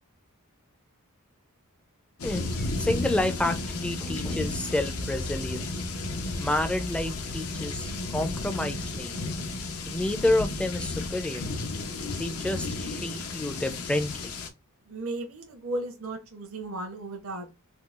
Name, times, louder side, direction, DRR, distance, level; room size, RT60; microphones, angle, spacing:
sound 1, 2.2-14.5, left 2 dB, 75° left, 0.6 m, -33 dB
voice 1, 2.2-5.7 6.4-9.3 9.9-11.5 12.2-14.3, left 1 dB, 5° left, 0.4 m, -29 dB
voice 2, 14.9-17.5, right 2 dB, 65° right, 0.8 m, -35 dB
3.8 x 2.3 x 2.4 m
head